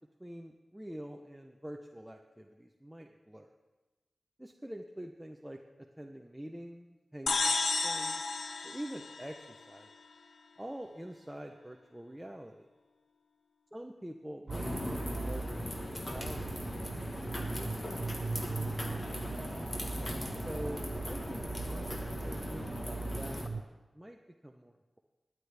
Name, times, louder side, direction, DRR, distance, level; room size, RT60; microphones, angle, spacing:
voice 1, 0.2-3.5 4.4-7.6 7.8-8.2 8.6-9.9 10.6-12.6 13.7-16.7 17.1-19.6 20.4-25.0, right 1 dB, 5° right, 2 dB, 0.6 m, -46 dB
sound 1, 7.3-9.9, left 3 dB, 70° left, 0.7 m, -32 dB
sound 2, 14.5-23.5, left 1 dB, 30° left, 1.2 m, -39 dB
sound 3, 14.5-23.6, right 3 dB, 50° right, 0.3 m, -40 dB
21.0 x 9.7 x 3.4 m, 1.2 s
wide cardioid pair, 130°, 0 cm